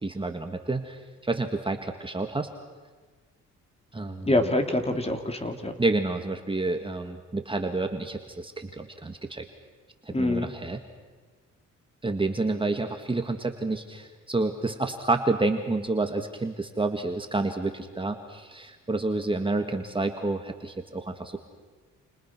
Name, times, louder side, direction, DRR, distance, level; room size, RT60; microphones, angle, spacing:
voice 1, 0.0-2.5 3.9-4.3 5.8-9.4 10.1-10.8 12.0-21.4, right 2 dB, 15° right, 5 dB, 1.9 m, -29 dB
voice 2, 4.2-5.7 10.1-10.5, left 1 dB, 20° left, 6 dB, 3.0 m, -25 dB
29.5 x 29.0 x 6.1 m, 1.4 s
cardioid pair, 90°, 30 cm